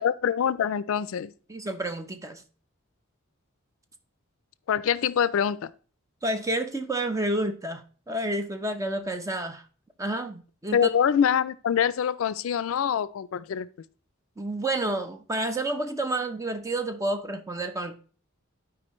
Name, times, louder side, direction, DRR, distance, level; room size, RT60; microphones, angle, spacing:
voice 1, 0.0-1.3 4.7-5.7 10.7-13.7, left 8 dB, 75° left, 0.4 m, -25 dB
voice 2, 1.5-2.4 6.2-9.6 10.0-10.9 14.4-17.9, right 1 dB, 15° right, 0.6 m, -30 dB
12.0 x 4.9 x 3.0 m
head